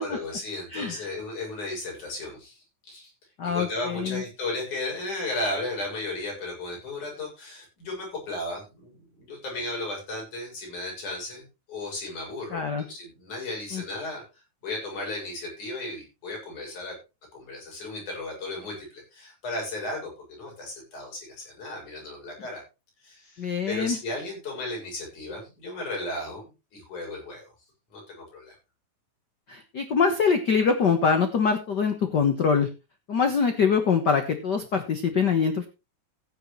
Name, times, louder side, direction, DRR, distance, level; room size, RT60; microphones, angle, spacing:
voice 1, 0.0-3.1 3.4-17.0 17.3-22.6 23.0-27.5 27.9-28.6, left 2 dB, 60° left, -1 dB, 7.9 m, -35 dB
voice 2, 3.4-4.2 12.5-12.8 13.7-13.8 23.4-24.0 29.5-32.7 33.1-35.7, left 5 dB, 85° left, 7 dB, 0.9 m, -24 dB
15.0 x 10.0 x 3.2 m, 0.27 s
omnidirectional pair, 3.9 m